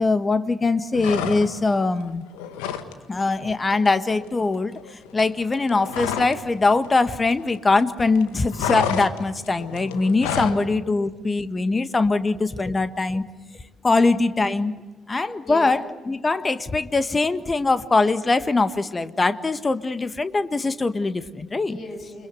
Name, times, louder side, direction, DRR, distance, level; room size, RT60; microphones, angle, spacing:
voice 1, 0.0-2.2 3.1-4.8 5.1-13.2 13.8-14.7 15.1-21.8, left 3 dB, 25° left, 11 dB, 1.7 m, -22 dB
sound 1, 0.9-1.8 2.1-2.9 3.2-3.4 3.7-6.5 6.7-7.8 8.1-10.6, left 8 dB, 70° left, 1.8 m, -30 dB
voice 2, 2.5-3.2 10.2-10.9 15.4-15.7 21.7-22.3, left 1 dB, 45° left, 5 dB, 7.3 m, -39 dB
29.5 x 24.0 x 8.1 m, 1.3 s
figure-of-eight pair, 45°, 0 cm